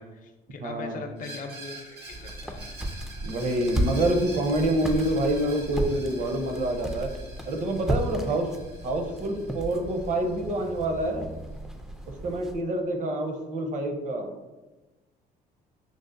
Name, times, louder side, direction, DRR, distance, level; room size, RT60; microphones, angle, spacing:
voice 1, 0.0-2.7, left 4 dB, 50° left, 4 dB, 0.6 m, -41 dB
voice 2, 0.6-1.1 3.2-7.1 7.5-8.5 8.8-11.3 12.1-14.3, right 1 dB, 45° right, 4 dB, 0.7 m, -27 dB
Screech, 1.2-10.8, right 2 dB, 75° right, 1.0 m, -46 dB
sound 1, 2.1-12.6, right 1 dB, 5° right, 0.3 m, -34 dB
6.1 x 2.1 x 2.5 m, 1.1 s
cardioid pair, 110°, 17 cm